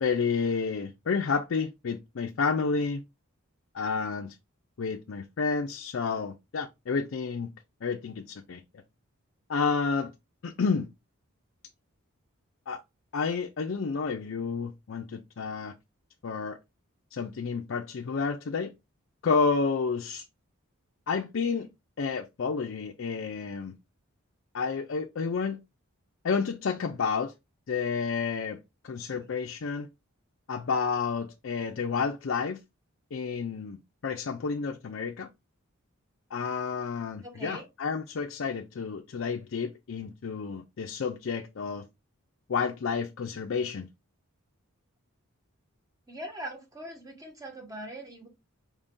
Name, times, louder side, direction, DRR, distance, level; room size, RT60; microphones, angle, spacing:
voice 1, 0.0-3.0 3.7-4.4 4.8-7.5 7.8-8.6 9.5-10.1 10.4-10.9 12.7-12.8 13.1-15.7 16.2-16.6 17.1-18.7 19.2-20.2 21.1-21.7 22.0-23.7 24.5-25.6 26.2-27.3 27.7-28.6 28.8-29.9 30.5-32.6 33.1-35.3 36.3-41.9 42.5-43.9, left 5 dB, 60° left, 0.4 m, -30 dB
voice 2, 37.2-37.6 46.1-48.3, right 1 dB, 15° right, 1.1 m, -41 dB
4.9 x 2.6 x 3.6 m
head